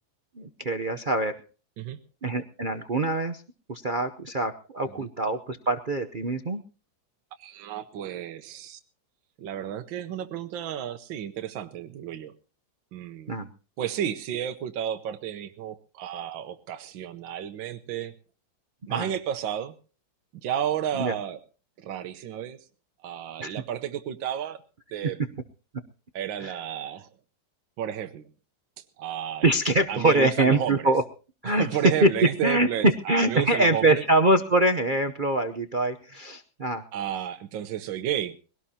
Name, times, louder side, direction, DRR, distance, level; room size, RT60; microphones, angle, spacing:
voice 1, 0.4-1.4 2.2-3.4 3.7-6.6 13.3-13.5 18.9-19.1 20.9-21.1 23.4-23.6 26.4-26.6 29.4-31.0 31.4-31.7 32.0-36.8, right 2 dB, 50° right, 6 dB, 0.6 m, -24 dB
voice 2, 7.4-8.8 9.4-12.3 12.9-13.4 13.8-18.1 18.9-19.7 20.4-21.4 21.8-22.6 23.0-24.6 24.9-25.2 26.1-27.1 27.8-28.3 29.0-29.4 29.9-30.9 31.4-34.0 36.9-38.3, right 10 dB, 80° right, 8 dB, 1.7 m, -32 dB
22.0 x 17.5 x 2.8 m, 0.35 s
omnidirectional pair, 2.1 m